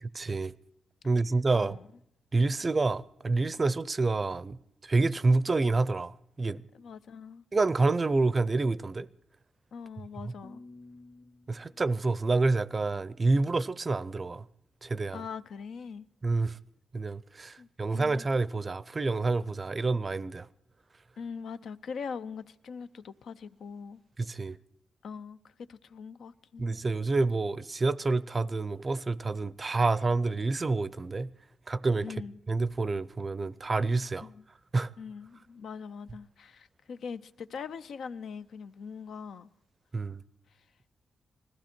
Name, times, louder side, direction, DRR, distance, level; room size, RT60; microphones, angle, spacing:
voice 1, 0.0-0.5 1.0-1.8 2.3-4.6 4.8-6.6 7.5-9.1 10.2-10.3 11.5-14.4 14.8-15.2 16.2-16.6 16.9-20.5 24.2-24.6 26.6-31.3 31.7-32.1 32.5-34.3 34.7-34.9 39.9-40.2, right 3 dB, 30° right, 0.5 m, -28 dB
voice 2, 1.6-1.9 6.7-7.4 9.7-10.6 15.1-16.1 17.6-18.3 21.2-24.0 25.0-25.4 25.7-26.8 32.0-32.4 34.2-34.5 35.0-39.5, left 6 dB, 75° left, 0.6 m, -42 dB
sound 1, 10.4-13.4, left 2 dB, 15° left, 0.9 m, -54 dB
20.0 x 15.0 x 4.4 m
cardioid pair, 115°, 0 cm